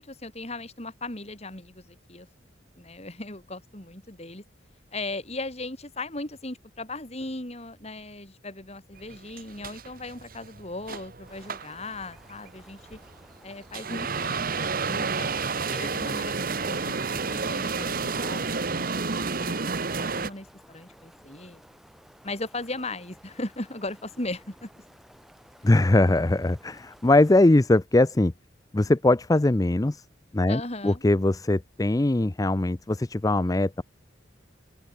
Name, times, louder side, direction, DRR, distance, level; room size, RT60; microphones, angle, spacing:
voice 1, 0.0-2.3 2.8-4.4 4.9-13.0 13.4-15.3 15.7-21.6 22.2-24.8 30.5-31.0, left 2 dB, 35° left, 4.2 m, -38 dB
sound 1, 9.0-20.3, right 4 dB, 50° right, 1.3 m, -30 dB
sound 2, 11.2-27.5, equal, ahead, 4.8 m, -55 dB
voice 2, 25.6-28.3 28.7-30.0 30.3-33.8, left 2 dB, 20° left, 0.5 m, -21 dB
open air
head